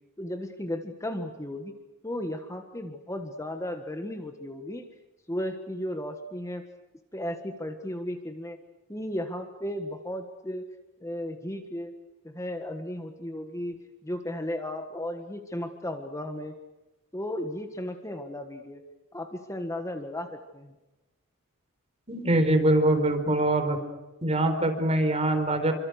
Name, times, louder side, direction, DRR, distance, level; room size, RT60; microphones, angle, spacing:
voice 1, 0.2-1.7 2.0-4.9 5.3-6.6 7.1-8.6 8.9-10.6 11.0-11.9 12.2-13.8 14.0-16.5 17.1-18.8 19.1-20.7, left 1 dB, 15° left, 6 dB, 1.6 m, -35 dB
voice 2, 22.1-23.8 24.2-25.7, right 1 dB, 30° right, 6 dB, 4.5 m, -23 dB
28.0 x 25.5 x 6.5 m, 1.1 s
head